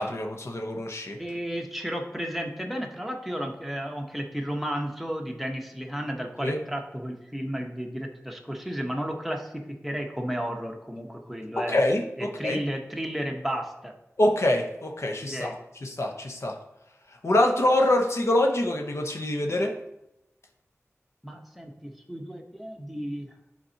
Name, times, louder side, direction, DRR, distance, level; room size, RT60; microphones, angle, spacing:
voice 1, 0.0-1.2 6.4-6.6 11.6-12.6 14.2-15.5 15.8-16.6 17.2-19.7, left 1 dB, 60° left, 2 dB, 1.0 m, -25 dB
voice 2, 1.2-11.7 12.2-13.9 15.2-15.5 21.2-23.3, equal, ahead, 1 dB, 1.1 m, -33 dB
11.0 x 4.3 x 2.9 m, 0.86 s
wide cardioid pair, 70°, 5 cm